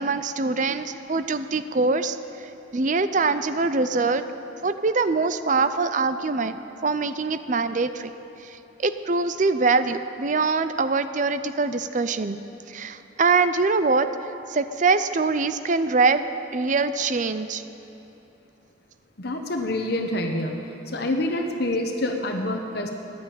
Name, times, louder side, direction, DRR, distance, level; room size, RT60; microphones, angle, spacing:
voice 1, 0.0-2.2 2.7-4.2 4.6-6.6 6.8-8.1 8.4-12.4 12.7-14.1 14.5-16.2 16.5-17.6, right 4 dB, 40° right, 11 dB, 0.5 m, -23 dB
voice 2, 19.2-20.6 20.9-22.9, left 1 dB, 55° left, 3 dB, 1.0 m, -26 dB
15.5 x 10.5 x 9.0 m, 2.9 s
head